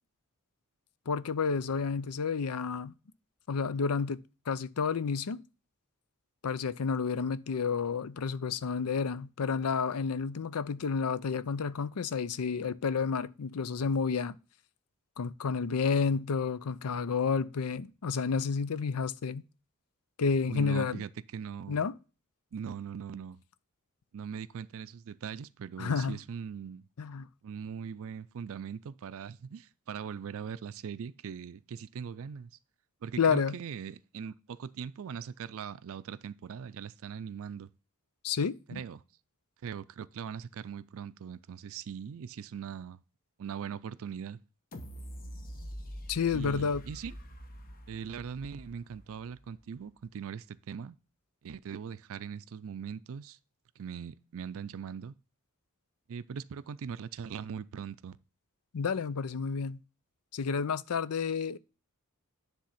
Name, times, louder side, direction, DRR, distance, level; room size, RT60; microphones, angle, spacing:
voice 1, 1.1-2.9 3.5-5.4 6.4-14.4 15.2-19.4 20.2-21.0 21.7-22.0 25.8-26.2 27.0-27.3 33.2-33.6 38.2-38.8 46.1-46.8 58.7-59.8 60.3-61.6, left 5 dB, 85° left, 0.5 m, -30 dB
voice 2, 20.5-21.8 22.5-23.4 24.1-26.8 27.4-32.5 33.0-37.7 38.7-39.0 39.6-43.0 43.4-44.4 46.3-47.1 47.9-51.0 51.4-53.4 53.8-55.1 56.1-58.2, right 7 dB, 65° right, 0.4 m, -40 dB
sound 1, 44.7-49.6 50.0-50.1, equal, 40° left, 1.1 m, -45 dB
10.0 x 3.5 x 5.7 m
head